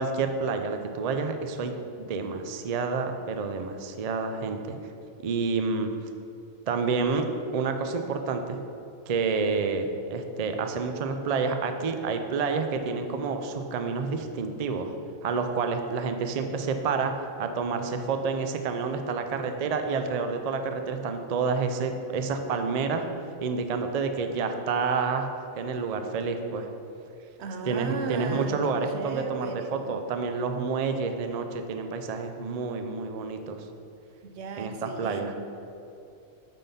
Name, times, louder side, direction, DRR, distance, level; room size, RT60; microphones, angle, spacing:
voice 1, 0.0-1.7 2.0-4.8 5.2-5.9 6.7-7.3 7.5-8.6 9.1-15.0 15.2-23.1 23.4-25.3 25.6-26.7 27.7-33.7 34.6-35.3, right 4 dB, 90° right, 6 dB, 0.3 m, -29 dB
voice 2, 27.4-30.1 34.2-35.4, right 4 dB, 60° right, 6 dB, 0.9 m, -36 dB
9.1 x 3.8 x 5.6 m, 2.7 s
omnidirectional pair, 1.4 m